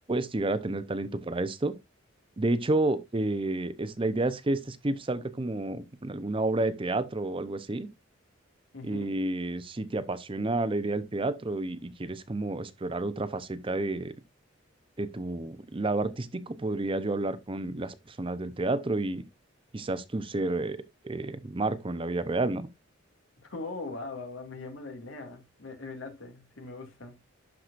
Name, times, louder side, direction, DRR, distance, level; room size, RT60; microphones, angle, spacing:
voice 1, 0.1-1.7 2.4-7.9 8.8-14.1 15.0-19.2 19.7-20.8 21.0-22.7, right 2 dB, 25° right, 0.6 m, -30 dB
voice 2, 8.7-9.2 23.5-27.2, left 3 dB, 80° left, 2.2 m, -40 dB
12.0 x 4.9 x 2.5 m
head